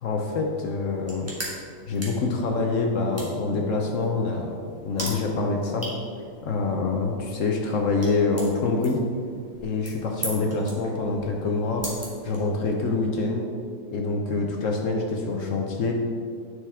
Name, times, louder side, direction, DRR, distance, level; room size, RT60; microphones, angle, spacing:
voice 1, 0.0-1.3 1.9-4.6 4.8-5.8 6.4-9.0 9.6-13.4 13.9-15.9, left 3 dB, 65° left, 1 dB, 1.0 m, -26 dB
sound 1, 0.8-12.9, right 1 dB, 10° right, 1.3 m, -40 dB
9.6 x 4.8 x 3.5 m, 2.2 s
omnidirectional pair, 1.6 m